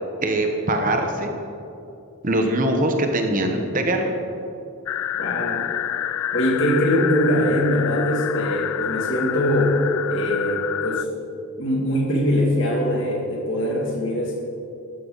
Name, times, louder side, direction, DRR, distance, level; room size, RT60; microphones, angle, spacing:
voice 1, 0.2-1.3 2.2-4.1, right 1 dB, 35° right, 4 dB, 1.1 m, -22 dB
sound 1, 4.9-11.0, left 11 dB, 70° left, 0.3 m, -28 dB
voice 2, 5.2-5.7 6.3-9.8 10.1-11.1 11.6-14.4, equal, 55° left, -2 dB, 2.6 m, -22 dB
14.5 x 12.5 x 4.1 m, 2.7 s
head